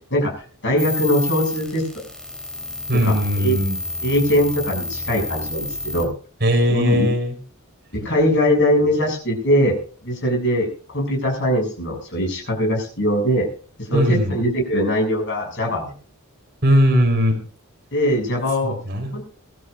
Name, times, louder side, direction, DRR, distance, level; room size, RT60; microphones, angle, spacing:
voice 1, 0.6-1.8 2.9-3.6 4.0-6.1 6.7-7.1 8.0-9.8 10.0-13.5 13.8-15.9 17.9-18.7 19.1-19.2, equal, 55° left, 1 dB, 7.0 m, -21 dB
sound 1, 0.8-6.1, left 2 dB, 5° left, 3.8 m, -29 dB
voice 2, 2.9-3.8 6.4-7.3 13.9-14.4 16.6-17.4 18.6-19.1, equal, 45° right, 1 dB, 4.4 m, -19 dB
23.5 x 13.0 x 2.5 m, 0.42 s
head